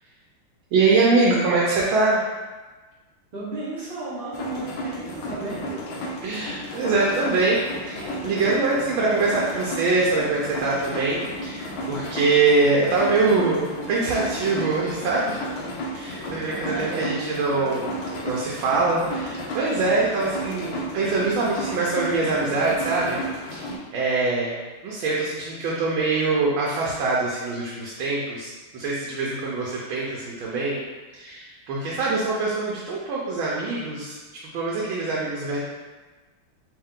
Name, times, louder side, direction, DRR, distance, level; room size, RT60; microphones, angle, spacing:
voice 1, 0.7-2.2 6.2-15.6 15.9-17.9 18.2-23.2 23.5-24.6 24.8-30.8 31.1-34.2 34.5-35.6, right 3 dB, 75° right, -4 dB, 1.4 m, -23 dB
voice 2, 3.3-5.8 16.6-17.2, right 2 dB, 60° right, -8 dB, 0.6 m, -34 dB
sound 1, 4.3-23.8, equal, 70° left, 1.3 m, -33 dB
4.4 x 2.6 x 3.6 m, 1.3 s
omnidirectional pair, 2.4 m